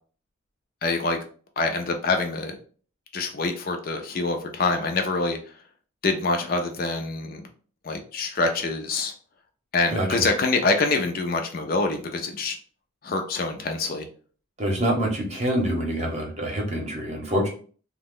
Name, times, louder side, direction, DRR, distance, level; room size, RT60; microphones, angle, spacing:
voice 1, 0.8-1.2 1.6-2.6 3.1-5.4 6.0-7.4 7.8-9.1 9.7-12.6 13.0-14.1, left 3 dB, 45° left, 4 dB, 0.4 m, -25 dB
voice 2, 9.9-10.2 14.6-17.5, right 1 dB, 30° right, 0 dB, 0.8 m, -26 dB
2.8 x 2.1 x 3.7 m, 0.43 s
head